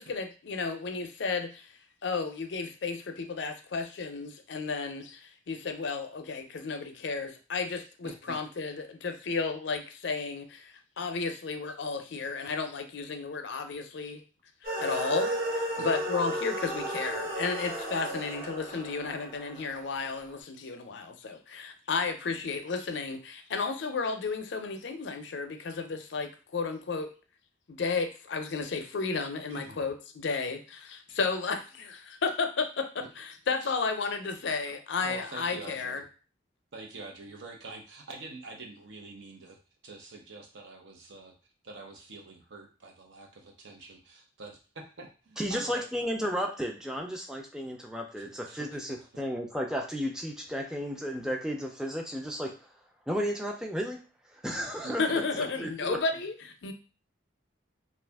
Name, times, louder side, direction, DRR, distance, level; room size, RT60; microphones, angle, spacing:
voice 1, 0.0-1.7 2.0-14.2 14.6-27.1 27.7-36.0 55.0-56.7, left 4 dB, 70° left, 6 dB, 0.5 m, -33 dB
voice 2, 8.0-8.4 15.8-15.9 29.5-29.9 33.0-33.1 33.6-33.7 34.7-36.0 36.7-39.6 39.8-41.3 41.6-46.0 48.2-49.0 54.8-55.7, right 3 dB, 75° right, 2 dB, 0.7 m, -46 dB
sound 1, 14.6-20.1, right 1 dB, 50° right, 0.9 m, -34 dB
voice 3, 45.4-52.6 53.1-54.0 54.3-55.1 55.6-56.0, equal, 5° right, 1 dB, 0.4 m, -33 dB
2.7 x 2.4 x 3.4 m, 0.35 s
head